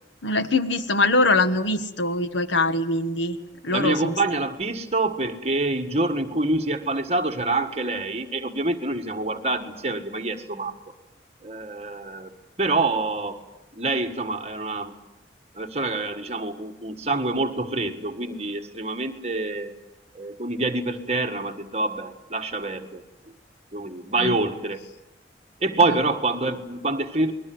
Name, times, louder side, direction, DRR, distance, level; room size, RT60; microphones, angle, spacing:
voice 1, 0.2-3.4 3.6-4.1 24.2-24.3, left 2 dB, 90° left, 11 dB, 1.5 m, -23 dB
voice 2, 3.7-10.7 11.4-13.4 13.7-14.9 15.5-19.7 20.1-23.0 23.7-24.8 25.6-27.3, right 2 dB, 35° right, 5 dB, 1.6 m, -26 dB
29.5 x 20.5 x 7.9 m, 0.94 s
head